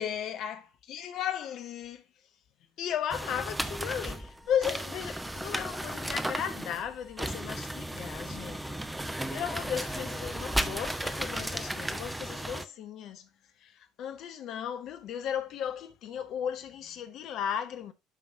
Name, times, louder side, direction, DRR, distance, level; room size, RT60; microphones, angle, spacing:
voice 1, 0.0-2.0 2.8-13.3 13.6-17.9, left 9 dB, 50° left, 1.2 m, -35 dB
sound 1, 3.1-12.7, right 1 dB, 5° right, 0.8 m, -35 dB
12.0 x 5.3 x 2.8 m
figure-of-eight pair, 60°, 0 cm